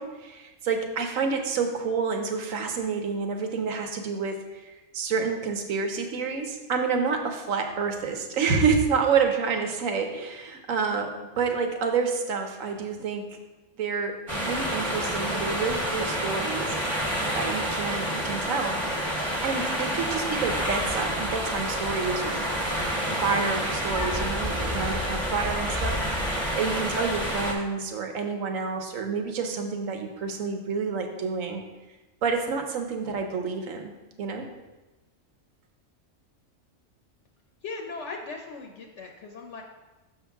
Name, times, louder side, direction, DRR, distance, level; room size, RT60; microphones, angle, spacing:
voice 1, 0.0-13.3 13.8-16.8 17.3-18.8 19.4-22.9 23.2-26.0 26.5-31.6 32.2-33.9 34.2-34.5, right 5 dB, 80° right, 4 dB, 1.2 m, -28 dB
sound 1, 14.3-27.5, equal, 25° right, 1.0 m, -28 dB
voice 2, 37.6-39.6, left 4 dB, 65° left, 2 dB, 0.9 m, -38 dB
6.5 x 5.7 x 3.5 m, 1.1 s
omnidirectional pair, 1.4 m